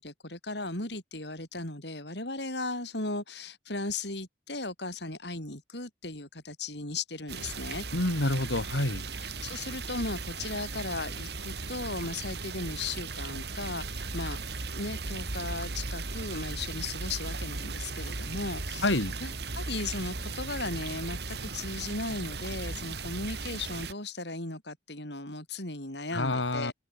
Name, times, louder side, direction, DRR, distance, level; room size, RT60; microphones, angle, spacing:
voice 1, 0.0-7.9 9.1-14.4 14.7-26.7, left 2 dB, 65° left, 7.3 m, -36 dB
sound 1, 7.3-23.9, right 3 dB, 60° right, 2.5 m, -37 dB
voice 2, 7.9-9.0 18.8-19.1 26.1-26.7, left 2 dB, 90° left, 3.3 m, -27 dB
head